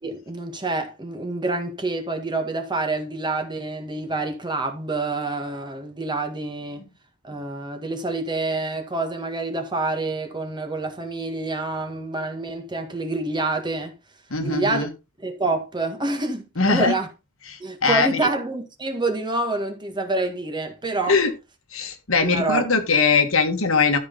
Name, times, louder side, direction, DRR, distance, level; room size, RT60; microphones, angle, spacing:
voice 1, 0.0-6.9 7.2-13.9 14.4-14.9 15.2-17.1 17.6-21.2 22.2-22.7, right 2 dB, 20° right, 1.7 m, -27 dB
voice 2, 14.3-14.9 16.6-17.0 17.5-18.2 21.1-21.3 21.7-24.0, left 4 dB, 75° left, 1.7 m, -21 dB
12.5 x 5.8 x 4.0 m
head